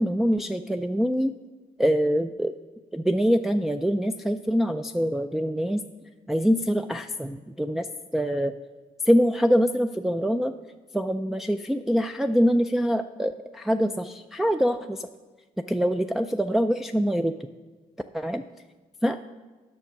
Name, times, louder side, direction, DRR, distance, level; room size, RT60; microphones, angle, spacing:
voice 1, 0.0-1.4 1.8-2.5 2.9-5.8 6.3-7.9 8.1-8.5 9.1-10.5 10.9-15.1 15.7-17.5 18.1-18.4 19.0-19.2, equal, ahead, 5 dB, 0.3 m, -24 dB
8.6 x 6.1 x 5.8 m, 1.3 s
cardioid pair, 80°, 15 cm